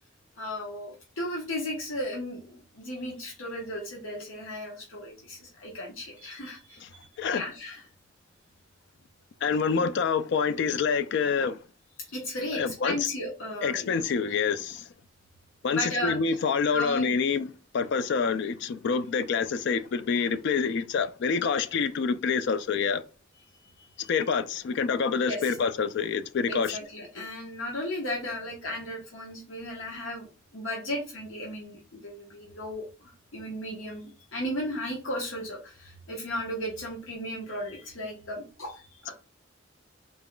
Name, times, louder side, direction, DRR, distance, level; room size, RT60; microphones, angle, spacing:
voice 1, 0.4-6.8 7.3-7.9 9.7-9.9 12.0-14.0 15.7-16.4 16.7-17.2 23.8-24.1 25.2-25.5 26.5-30.3 30.5-39.1, left 1 dB, 90° left, 1.0 m, -35 dB
voice 2, 9.4-11.6 12.5-13.1 13.6-14.8 15.6-17.5 17.7-23.0 24.1-26.8, left 5 dB, 60° left, 0.3 m, -27 dB
4.0 x 2.3 x 3.7 m
head